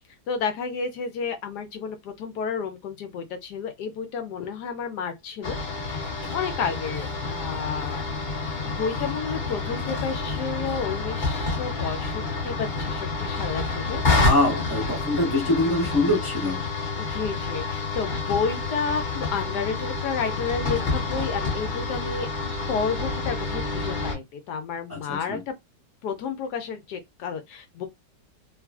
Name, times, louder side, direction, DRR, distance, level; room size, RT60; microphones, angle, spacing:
voice 1, 0.3-5.6 5.9-6.1 6.3-8.0 8.6-14.0 17.0-22.3 22.7-25.5 26.0-27.9, left 5 dB, 75° left, 1.1 m, -31 dB
sound 1, 5.4-24.2, left 3 dB, 45° left, 0.6 m, -28 dB
voice 2, 14.0-16.6 24.9-25.4, left 2 dB, 10° right, 0.6 m, -24 dB
3.0 x 2.3 x 2.3 m
omnidirectional pair, 1.9 m